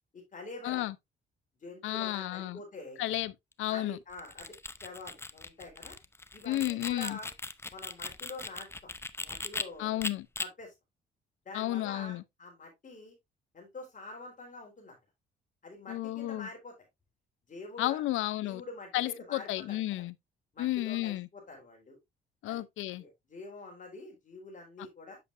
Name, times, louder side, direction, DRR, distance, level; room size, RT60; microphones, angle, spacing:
voice 1, 0.1-0.9 1.6-3.0 3.7-4.5 4.8-6.0 6.3-7.3 7.7-8.9 9.2-10.0 10.4-10.7 11.5-13.2 13.5-15.0 15.6-16.7 17.5-18.0 18.4-20.0 20.5-22.0 22.5-22.6 23.0-25.2, left 2 dB, 40° left, 3.8 m, -46 dB
voice 2, 0.6-0.9 1.8-2.6 3.0-3.3 3.6-4.0 6.5-7.2 9.8-10.3 11.5-12.2 15.9-16.5 17.8-18.6 18.9-20.1 20.6-21.3 22.4-23.0, left 15 dB, 85° left, 0.6 m, -32 dB
sound 1, 4.1-9.6 10.0-10.5, left 2 dB, 10° left, 0.6 m, -39 dB
8.4 x 6.8 x 2.5 m
cardioid pair, 90°, 20 cm